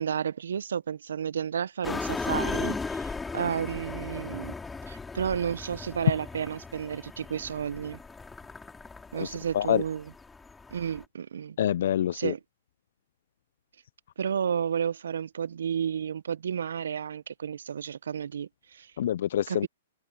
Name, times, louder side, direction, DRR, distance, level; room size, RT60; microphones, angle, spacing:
voice 1, 0.0-4.5 4.9-8.0 9.1-10.1 10.7-11.6 12.1-12.4 14.2-18.9 19.5-19.7, right 8 dB, 70° right, 1.0 m, -32 dB
sound 1, 1.8-11.0, left 4 dB, 10° left, 5.3 m, -37 dB
voice 2, 9.2-9.8 11.6-12.3 19.0-19.7, left 11 dB, 60° left, 0.4 m, -26 dB
hypercardioid pair, 120°, 0 cm